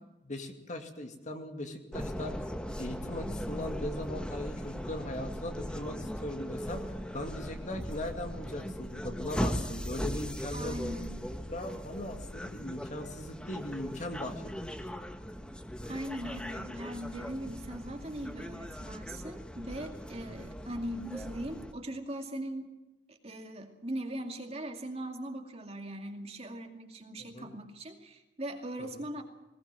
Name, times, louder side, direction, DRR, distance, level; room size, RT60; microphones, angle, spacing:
voice 1, 0.2-2.5 2.8-6.8 7.1-10.8 11.5-14.8 20.2-20.3 27.2-27.5 28.9-29.0, left 1 dB, 40° left, 5 dB, 2.3 m, -39 dB
sound 1, 1.9-21.7, equal, 5° left, 1.1 m, -39 dB
voice 2, 10.5-11.1 15.9-22.7 23.1-29.2, right 1 dB, 35° right, 4 dB, 2.3 m, -40 dB
20.0 x 19.5 x 7.6 m, 1.0 s
head